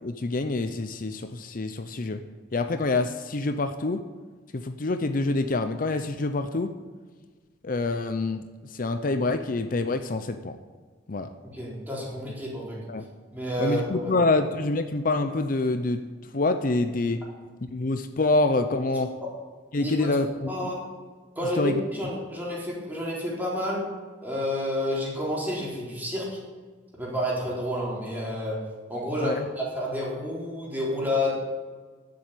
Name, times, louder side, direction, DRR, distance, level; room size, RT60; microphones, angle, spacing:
voice 1, 0.0-2.2 2.5-4.0 4.5-6.7 7.6-8.4 8.7-10.6 11.1-11.3 12.9-13.0 13.6-16.0 16.3-17.2 17.6-19.1 19.7-20.7 21.6-21.8 29.2-29.5, left 2 dB, 50° left, 8 dB, 0.7 m, -26 dB
voice 2, 11.5-12.8 13.3-14.1 19.8-20.1 20.5-20.8 21.4-23.9 24.2-26.4 26.9-28.6 28.9-31.3, left 1 dB, 10° right, -5 dB, 3.8 m, -30 dB
11.0 x 7.7 x 8.2 m, 1.5 s
head